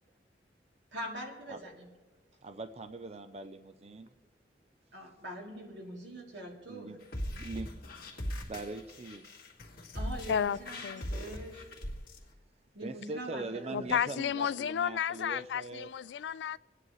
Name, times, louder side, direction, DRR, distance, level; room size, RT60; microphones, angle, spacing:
voice 1, 0.9-1.9 4.9-6.9 9.9-11.7 12.7-13.9, right 1 dB, 85° right, 3.0 m, -43 dB
voice 2, 2.4-4.1 6.7-7.0 7.2-9.4 12.8-15.9, right 2 dB, 35° right, 0.5 m, -42 dB
sound 1, 7.0-12.2, equal, 55° left, 2.1 m, -40 dB
voice 3, 13.7-16.6, left 8 dB, 80° left, 0.3 m, -32 dB
28.0 x 9.8 x 3.1 m
head